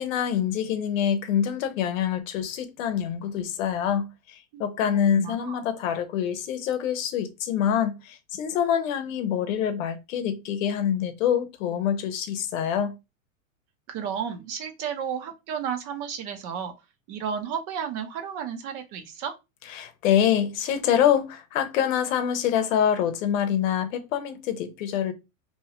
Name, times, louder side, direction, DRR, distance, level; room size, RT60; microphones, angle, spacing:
voice 1, 0.0-13.0 19.7-25.1, left 9 dB, 70° left, 0.8 m, -25 dB
voice 2, 4.5-5.6 13.9-16.7 17.1-19.3, right 7 dB, 45° right, 0.7 m, -33 dB
2.8 x 2.3 x 2.8 m
hypercardioid pair, 115°, 41 cm